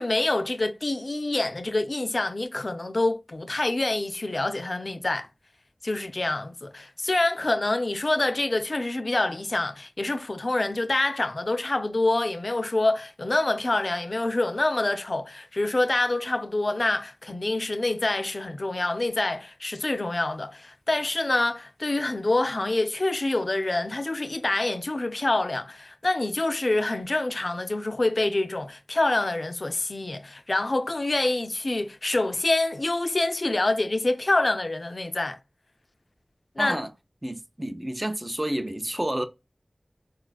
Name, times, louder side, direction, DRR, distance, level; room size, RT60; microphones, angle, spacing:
voice 1, 0.0-5.3 5.8-35.4 36.6-36.8, left 2 dB, 55° left, 0.4 m, -26 dB
voice 2, 36.6-36.9 37.2-39.2, right 1 dB, 25° right, 0.5 m, -30 dB
4.1 x 2.3 x 2.3 m
wide cardioid pair, 40°, 0 cm